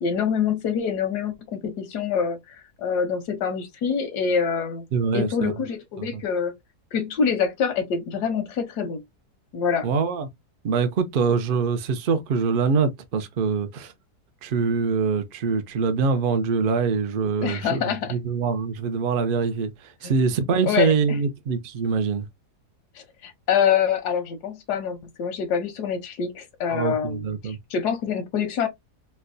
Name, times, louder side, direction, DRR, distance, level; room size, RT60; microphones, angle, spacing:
voice 1, 0.0-4.8 5.1-6.5 6.9-9.0 9.5-9.9 17.4-18.1 20.0-20.1 20.6-21.2 23.0-28.7, left 7 dB, 85° left, 1.3 m, -26 dB
voice 2, 4.9-5.5 6.0-6.2 9.8-10.3 10.6-13.9 14.4-22.3 26.7-27.6, right 5 dB, 80° right, 0.4 m, -24 dB
4.4 x 2.2 x 2.6 m
omnidirectional pair, 1.7 m